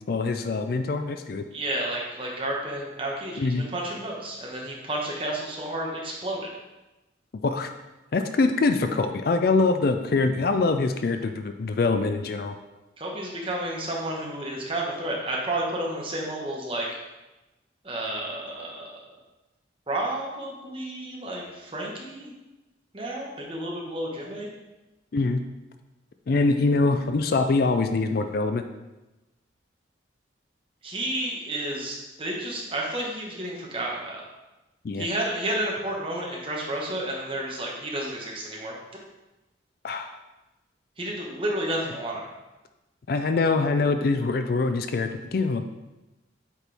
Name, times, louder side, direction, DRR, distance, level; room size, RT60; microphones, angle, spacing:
voice 1, 0.1-1.4 3.4-3.6 7.4-7.7 8.1-12.5 25.1-25.4 26.3-28.6 34.8-35.1 39.8-40.2 43.1-45.7, left 3 dB, 50° left, 8 dB, 0.4 m, -24 dB
voice 2, 1.5-6.5 13.0-16.9 17.8-19.1 19.9-22.3 22.9-24.5 30.8-34.2 35.0-38.7 41.0-42.3, right 1 dB, 30° right, -2 dB, 1.2 m, -31 dB
8.2 x 4.5 x 3.4 m, 1.0 s
head